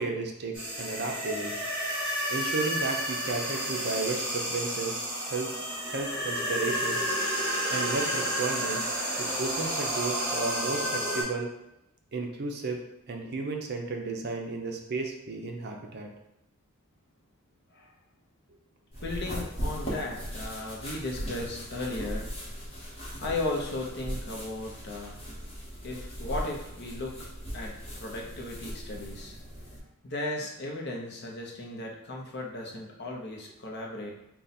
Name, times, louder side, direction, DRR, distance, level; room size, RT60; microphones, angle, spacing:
voice 1, 0.0-1.5 2.3-5.5 5.8-7.0 7.7-11.5 12.1-12.8 13.1-16.1, right 3 dB, 45° right, 2 dB, 0.5 m, -33 dB
sound 1, 0.5-11.2, equal, 5° right, 1.4 m, -31 dB
sound 2, 18.9-29.8, equal, 25° left, 1.1 m, -38 dB
voice 2, 19.0-22.4 23.2-25.2 25.8-27.3 27.5-29.3 30.0-34.1, left 2 dB, 50° left, 0 dB, 0.7 m, -36 dB
3.9 x 2.3 x 4.1 m, 0.86 s
head